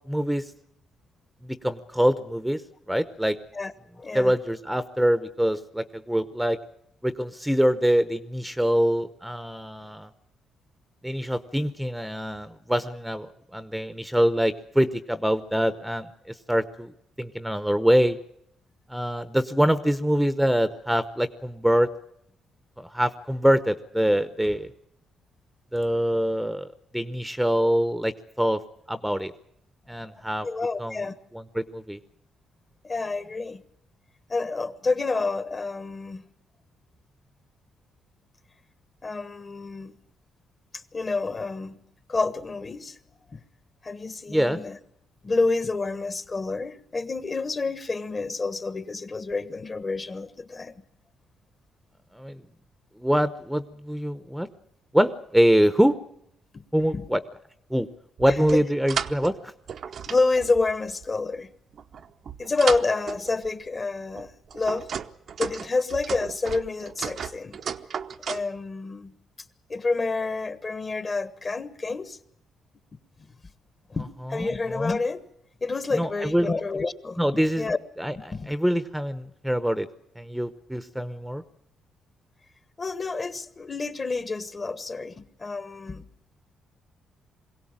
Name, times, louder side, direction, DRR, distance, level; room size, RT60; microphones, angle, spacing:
voice 1, 0.1-0.5 1.4-2.6 2.9-3.4 4.1-6.6 7.0-10.1 11.0-16.9 17.2-18.2 18.9-21.9 22.8-24.7 25.7-26.7 26.9-28.6 28.9-29.3 29.9-30.5 30.8-31.0 31.3-32.0 44.3-44.6 52.1-52.4 53.0-54.5 54.9-56.0 56.7-57.2 57.7-57.9 58.2-59.5 74.3-74.5 75.9-76.5 77.2-77.7 78.0-79.9 80.2-81.4, equal, ahead, 0.8 m, -24 dB
voice 2, 3.5-4.3 30.4-31.1 32.8-33.6 34.3-36.2 39.0-39.9 40.7-41.8 42.1-43.0 43.3-43.4 43.8-44.8 45.2-50.7 56.5-56.6 56.9-57.1 58.3-58.6 60.1-61.5 62.4-64.9 65.4-67.6 68.3-69.1 69.7-72.2 73.9-75.2 75.6-77.2 77.6-77.8 78.1-78.5 82.8-86.0, left 3 dB, 30° left, 1.3 m, -28 dB
sound 1, 58.2-59.4 59.7-61.0 61.7-63.5 64.1-68.5, right 7 dB, 60° right, 0.8 m, -34 dB
22.5 x 17.0 x 8.8 m
cardioid pair, 90°, 0 cm